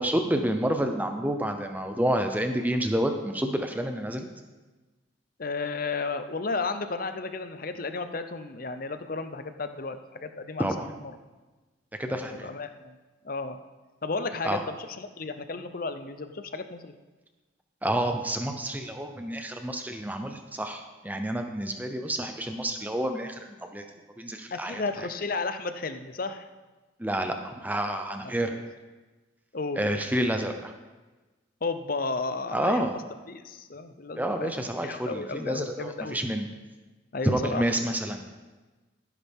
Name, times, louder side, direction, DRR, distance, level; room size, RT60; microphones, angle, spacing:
voice 1, 0.0-4.3 10.6-10.9 12.0-12.5 14.4-14.6 17.8-23.9 24.2-24.8 27.0-28.6 29.8-30.7 32.5-33.0 34.2-36.5 37.2-38.2, right 1 dB, 10° right, 5 dB, 0.8 m, -29 dB
voice 2, 5.4-10.9 12.1-13.0 13.2-13.6 14.0-16.9 24.5-26.5 28.5-28.6 29.5-29.8 31.6-32.9 33.3-34.5 34.8-36.2 37.1-37.6, left 3 dB, 45° left, 9 dB, 0.7 m, -33 dB
15.0 x 10.0 x 3.6 m, 1.2 s
head